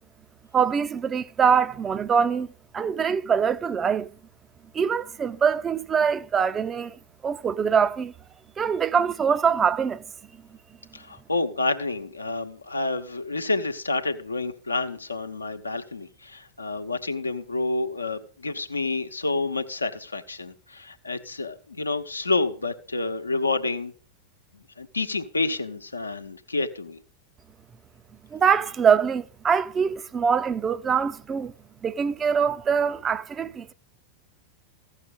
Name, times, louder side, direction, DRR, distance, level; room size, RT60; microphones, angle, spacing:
voice 1, 0.5-2.5 2.7-4.1 4.7-7.0 7.2-8.1 8.6-10.0 28.3-31.5 31.8-33.7, right 6 dB, 20° right, 0.6 m, -23 dB
voice 2, 10.9-23.9 24.8-27.0, left 3 dB, 80° left, 0.9 m, -29 dB
15.0 x 6.5 x 5.5 m
figure-of-eight pair, 90°, 0 cm